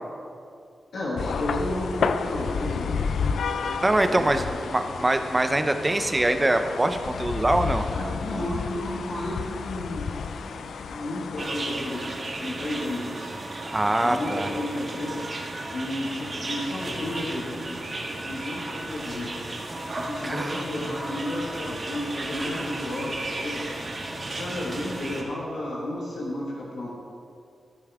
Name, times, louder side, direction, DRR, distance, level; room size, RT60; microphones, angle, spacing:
voice 1, 0.9-4.8 7.8-13.3 14.0-15.2 15.7-19.3 20.0-23.7 24.4-26.9, left 1 dB, 75° left, -5 dB, 1.7 m, -33 dB
sound 1, 1.2-11.5, left 5 dB, 90° left, 0.4 m, -31 dB
voice 2, 3.8-4.4 4.7-7.8 13.7-14.5 20.2-20.6, right 1 dB, 15° right, 7 dB, 0.6 m, -23 dB
sound 2, 11.4-25.2, right 2 dB, 40° right, 1.5 m, -34 dB
14.0 x 9.5 x 3.6 m, 2.4 s
wide cardioid pair, 145°, 0 cm